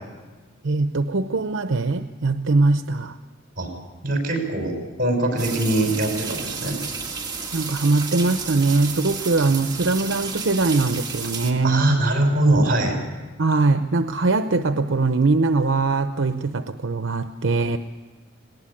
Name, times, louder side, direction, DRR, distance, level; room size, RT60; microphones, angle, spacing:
voice 1, 0.6-3.2 7.5-12.0 13.4-17.8, right 3 dB, 75° right, 8 dB, 0.8 m, -21 dB
voice 2, 4.0-6.8 11.6-13.0, right 1 dB, 45° right, 3 dB, 6.1 m, -22 dB
sound 1, 5.4-11.5, right 5 dB, 20° right, 2.1 m, -32 dB
19.5 x 18.5 x 8.6 m, 1.3 s
head